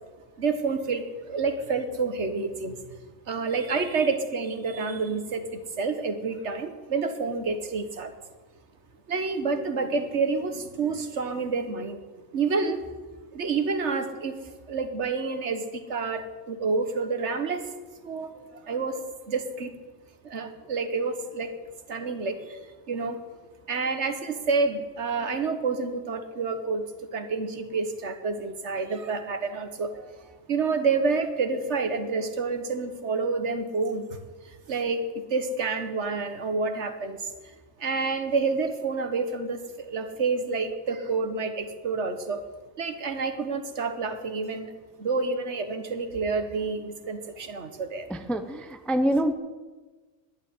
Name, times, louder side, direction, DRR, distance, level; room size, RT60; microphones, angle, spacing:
voice 1, 0.4-2.8 3.3-8.1 9.1-12.0 12.3-12.8 13.3-14.3 14.7-17.7 18.0-19.7 20.2-21.5 21.9-22.6 22.9-23.2 23.7-26.8 27.1-29.9 30.5-34.1 34.7-37.2 37.8-42.4 42.8-44.7 45.0-48.1, right 4 dB, 60° right, 8 dB, 1.5 m, -28 dB
voice 2, 48.1-49.3, right 1 dB, ahead, 9 dB, 0.6 m, -26 dB
11.0 x 9.7 x 9.9 m, 1.3 s
omnidirectional pair, 1.3 m